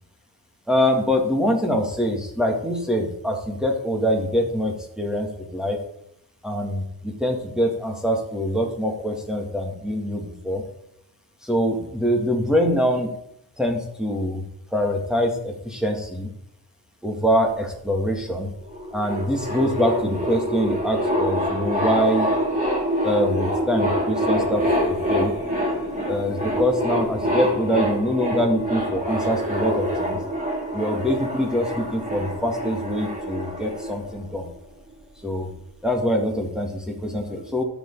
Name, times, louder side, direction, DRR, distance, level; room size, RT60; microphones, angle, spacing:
voice 1, 0.7-5.8 6.4-10.6 11.4-13.1 13.6-14.4 14.7-16.3 17.0-18.5 18.9-22.3 23.0-25.3 26.1-30.2 30.7-34.5 35.2-35.5 35.8-37.6, equal, ahead, -1 dB, 2.1 m, -24 dB
sound 1, 18.6-34.6, equal, 20° right, 4.2 m, -26 dB
13.0 x 7.2 x 3.8 m, 0.74 s
wide cardioid pair, 90°, 41 cm